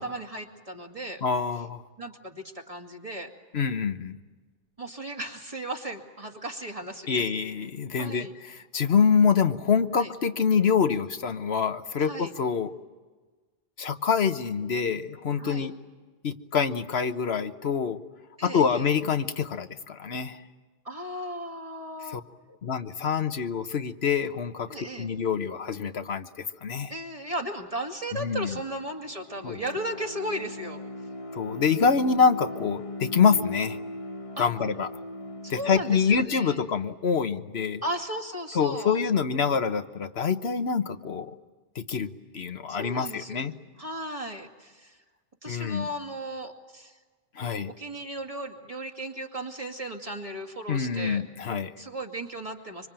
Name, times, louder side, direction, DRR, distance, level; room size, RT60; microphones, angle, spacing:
voice 1, 0.0-1.2 2.0-3.3 4.8-7.2 8.0-8.3 9.9-10.1 12.0-12.3 15.4-15.7 18.4-18.8 20.8-22.2 24.7-25.1 26.9-30.8 34.4-34.5 35.4-36.6 37.8-39.0 42.7-45.0 45.4-47.0 47.6-51.2 51.8-52.9, right 1 dB, 35° right, 2 dB, 2.5 m, -36 dB
voice 2, 1.2-1.8 3.5-4.1 7.1-12.7 13.8-15.7 16.2-18.0 18.4-20.4 22.1-22.2 22.6-24.7 25.0-26.9 28.2-28.6 29.4-29.6 31.3-33.8 34.4-34.9 35.5-37.8 38.5-41.3 41.7-43.5 45.5-45.9 47.4-47.7 50.7-51.7, left 6 dB, 85° left, 9 dB, 1.3 m, -26 dB
Bowed string instrument, 28.8-36.6, left 1 dB, 35° left, 1.5 m, -39 dB
25.5 x 25.5 x 8.9 m, 1.4 s
omnidirectional pair, 1.0 m